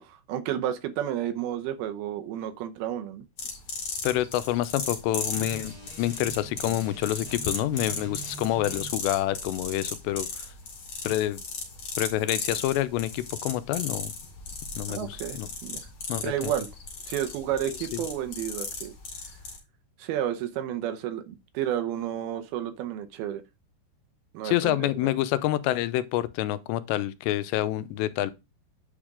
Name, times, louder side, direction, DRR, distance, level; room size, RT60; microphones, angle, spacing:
voice 1, 0.0-3.2 14.9-15.8 16.2-16.7 17.1-18.9 20.0-23.4 24.3-25.1, right 11 dB, 75° right, 2.5 m, -31 dB
sound 1, 3.4-19.6, left 4 dB, 45° left, 2.9 m, -36 dB
voice 2, 4.0-5.7 6.0-10.5 11.0-11.4 12.0-14.1 14.8-15.5 16.1-16.5 17.7-18.0 24.4-28.3, left 14 dB, 90° left, 2.9 m, -27 dB
sound 2, 5.2-9.0, right 3 dB, 10° right, 2.2 m, -44 dB
9.6 x 5.1 x 3.6 m
omnidirectional pair, 4.9 m